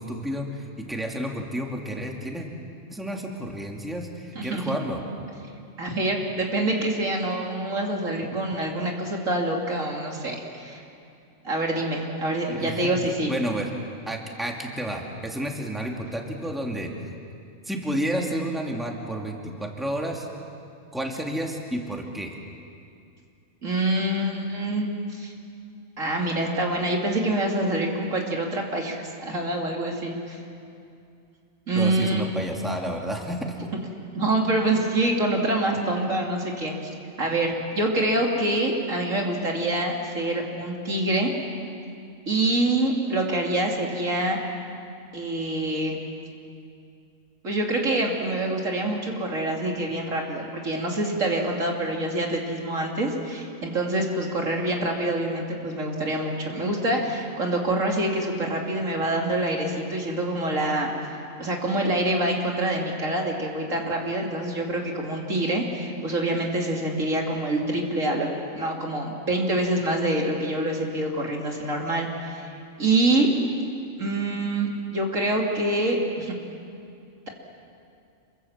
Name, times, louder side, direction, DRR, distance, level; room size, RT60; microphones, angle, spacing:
voice 1, 0.0-2.5 2.9-5.0 12.5-12.9 13.3-13.7 14.1-16.9 17.7-20.3 20.9-22.3 31.7-33.5, right 1 dB, ahead, 0 dB, 2.3 m, -31 dB
voice 2, 4.3-4.7 5.8-10.8 11.4-13.3 23.6-25.3 26.0-30.4 31.7-32.3 34.1-36.7 37.2-41.3 42.3-44.4 45.1-46.0 47.4-60.9 61.4-68.3 68.5-72.5 72.8-73.3 74.0-76.4, right 1 dB, 75° right, 0 dB, 3.2 m, -26 dB
27.0 x 23.5 x 7.4 m, 2.5 s
omnidirectional pair, 1.4 m